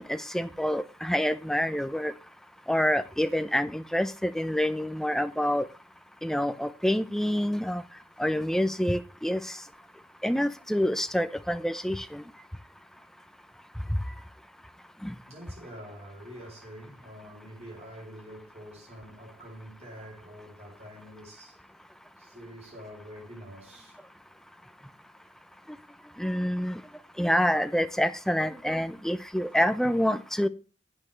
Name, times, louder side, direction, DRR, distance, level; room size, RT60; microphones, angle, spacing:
voice 1, 0.0-2.1 2.7-5.7 6.2-7.8 8.2-9.4 10.2-12.2 15.0-15.1 26.2-26.8 27.2-30.5, equal, ahead, 0.5 m, -27 dB
voice 2, 15.3-21.6 22.2-24.0, equal, 35° right, 6.3 m, -46 dB
11.0 x 8.8 x 3.2 m
head